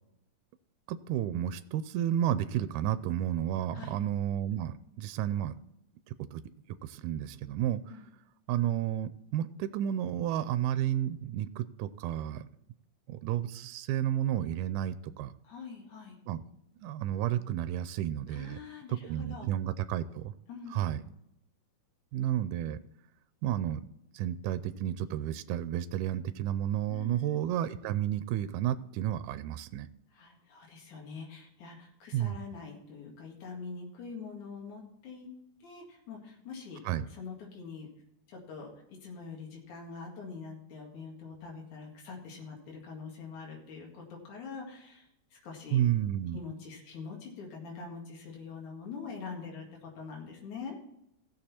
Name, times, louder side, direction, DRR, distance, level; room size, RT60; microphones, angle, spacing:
voice 1, 0.9-5.5 6.3-6.4 6.8-7.8 8.5-12.5 13.1-15.3 16.3-16.4 16.8-18.6 18.9-20.3 20.7-21.0 22.1-22.8 23.4-23.9 24.1-29.9 32.1-32.4 36.9-37.1 45.7-46.4, right 11 dB, 85° right, 13 dB, 2.1 m, -31 dB
voice 2, 15.4-16.3 18.3-19.5 20.5-21.1 26.9-27.5 30.1-35.3 35.6-36.8 37.1-37.9 38.3-45.8 46.3-50.8, left 5 dB, 70° left, -1 dB, 3.5 m, -44 dB
16.0 x 6.6 x 4.3 m, 0.81 s
omnidirectional pair, 3.6 m